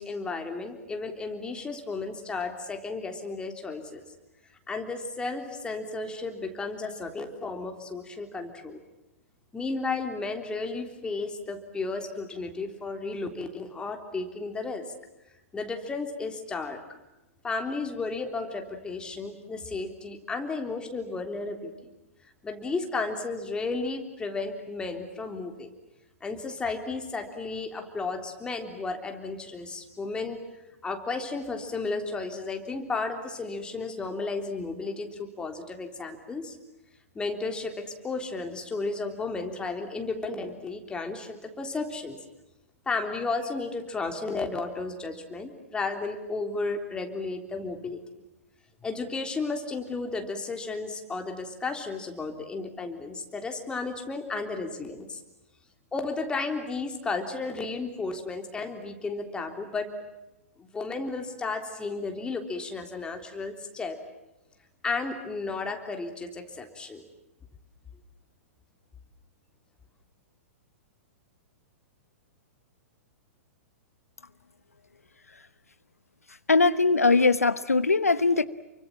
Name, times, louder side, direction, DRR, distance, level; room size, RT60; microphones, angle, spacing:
voice 1, 0.0-4.0 4.7-8.8 9.5-14.9 15.5-16.8 17.4-21.7 22.4-25.7 26.2-36.6 37.2-42.2 42.9-48.0 48.8-55.2 55.9-59.9 60.6-64.0 64.8-67.0, left 3 dB, 10° left, 5 dB, 3.6 m, -33 dB
voice 2, 76.5-78.5, left 3 dB, 85° left, 15 dB, 1.0 m, -21 dB
29.0 x 24.5 x 7.5 m, 0.97 s
figure-of-eight pair, 110°, 8 cm